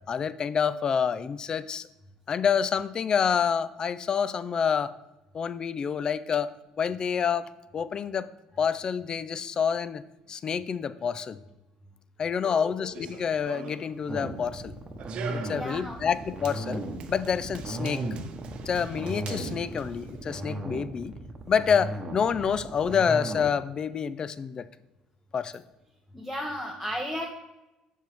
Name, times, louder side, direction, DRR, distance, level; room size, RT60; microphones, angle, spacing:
voice 1, 0.1-1.9 2.3-4.9 5.3-6.5 6.8-8.3 8.6-10.0 10.3-11.4 12.2-14.7 15.3-18.0 18.7-21.1 21.5-24.7 25.3-25.6, left 7 dB, 35° left, 16 dB, 0.4 m, -28 dB
Run, 12.8-20.5, right 6 dB, 55° right, 0.7 m, -43 dB
sound 1, 14.1-23.6, right 1 dB, 25° right, 1.0 m, -36 dB
voice 2, 15.5-16.0 26.1-27.3, equal, 10° left, 1 dB, 0.9 m, -34 dB
7.3 x 6.2 x 3.5 m, 0.99 s
cardioid pair, 105°, 2 cm